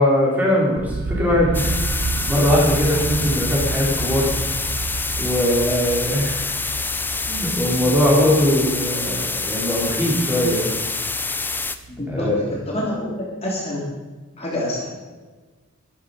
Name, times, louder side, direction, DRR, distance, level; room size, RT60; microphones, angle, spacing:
voice 1, 0.0-4.3 5.2-6.6 7.3-11.1 12.1-12.4, left 1 dB, 10° right, -4 dB, 4.7 m, -21 dB
sound 1, 0.8-12.6, right 3 dB, 55° right, 0.7 m, -30 dB
sound 2, 1.5-11.8, left 3 dB, 10° left, 0.7 m, -27 dB
voice 2, 11.9-12.3 12.7-13.8 14.4-14.9, left 1 dB, 30° left, -4 dB, 3.3 m, -27 dB
13.0 x 13.0 x 5.4 m, 1.3 s
head